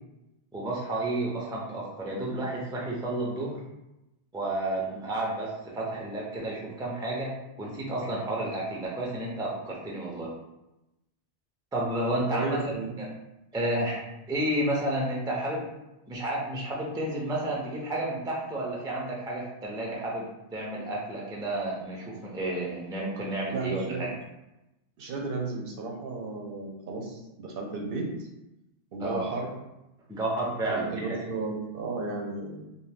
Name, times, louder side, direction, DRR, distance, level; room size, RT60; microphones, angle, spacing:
voice 1, 0.5-3.6 4.3-7.3 7.6-10.3 11.7-13.1 13.5-14.0 14.3-15.7 16.1-20.2 20.5-24.1 29.0-29.3 30.1-31.0, right 1 dB, 5° right, -3 dB, 0.4 m, -31 dB
voice 2, 12.3-13.0 23.5-24.1 25.0-28.3 28.9-29.5 30.7-32.6, right 3 dB, 70° right, 0 dB, 0.7 m, -34 dB
2.7 x 2.1 x 3.4 m, 0.94 s
omnidirectional pair, 1.0 m